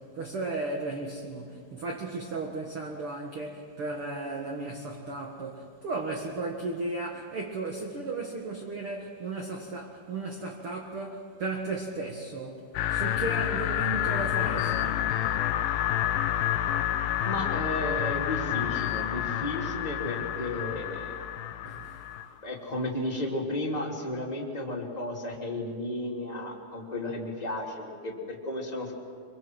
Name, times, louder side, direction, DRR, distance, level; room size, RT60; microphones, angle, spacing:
voice 1, 0.0-15.1 21.6-22.0, right 2 dB, 55° right, 0 dB, 1.6 m, -35 dB
sound 1, 12.7-22.2, left 11 dB, 75° left, 2.3 m, -29 dB
voice 2, 17.2-21.2 22.4-28.9, left 1 dB, 10° left, -2 dB, 2.3 m, -33 dB
25.0 x 24.5 x 6.1 m, 2.1 s
omnidirectional pair, 4.8 m